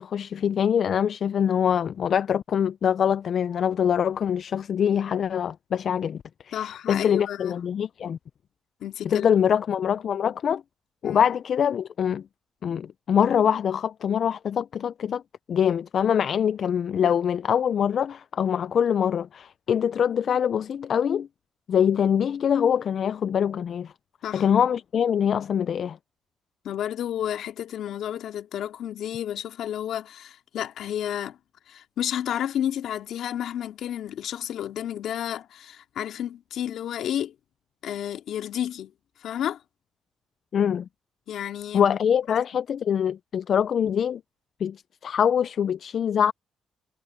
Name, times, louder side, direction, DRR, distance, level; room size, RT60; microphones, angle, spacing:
voice 1, 0.0-8.2 9.0-10.6 11.0-12.2 12.6-15.2 15.5-21.3 21.7-23.9 24.3-26.0 40.5-40.9 41.7-44.2 44.6-46.3, left 8 dB, 60° left, 0.4 m, -24 dB
voice 2, 6.5-7.6 8.8-9.3 11.0-11.2 24.2-24.5 26.6-31.4 31.7-37.3 37.8-38.9 39.2-39.6 41.3-41.9 42.3-42.4, left 10 dB, 75° left, 2.5 m, -31 dB
cardioid pair, 90°, 0 cm